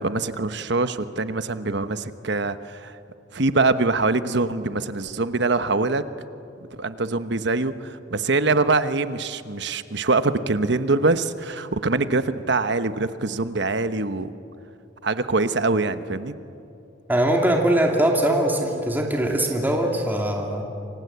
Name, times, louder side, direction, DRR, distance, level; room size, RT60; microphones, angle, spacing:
voice 1, 0.0-3.0 3.3-6.1 6.7-14.3 15.0-16.3, right 3 dB, 65° right, 11 dB, 1.1 m, -24 dB
voice 2, 17.1-20.6, right 1 dB, 10° right, 0 dB, 2.7 m, -21 dB
28.5 x 25.5 x 8.2 m, 2.7 s
head